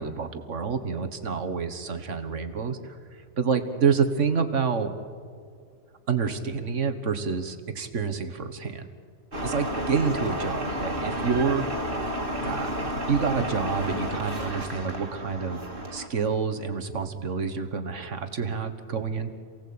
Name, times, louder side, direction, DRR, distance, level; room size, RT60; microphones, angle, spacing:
voice 1, 0.0-3.0 3.4-4.9 6.1-8.9 9.4-11.6 12.4-15.6 15.9-19.3, right 5 dB, 60° right, 8 dB, 1.7 m, -28 dB
sound 1, 9.3-16.1, equal, 40° right, 2.5 m, -31 dB
28.0 x 17.5 x 8.7 m, 2.2 s
omnidirectional pair, 1.4 m